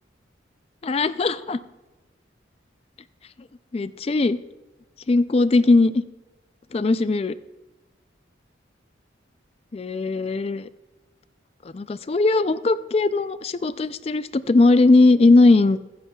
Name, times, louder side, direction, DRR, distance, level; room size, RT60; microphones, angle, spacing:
voice 1, 0.8-1.6 3.7-4.4 5.1-6.0 6.7-7.3 9.7-10.7 11.7-15.8, left 3 dB, 30° left, 14 dB, 0.3 m, -19 dB
15.5 x 13.5 x 2.3 m, 1.1 s
head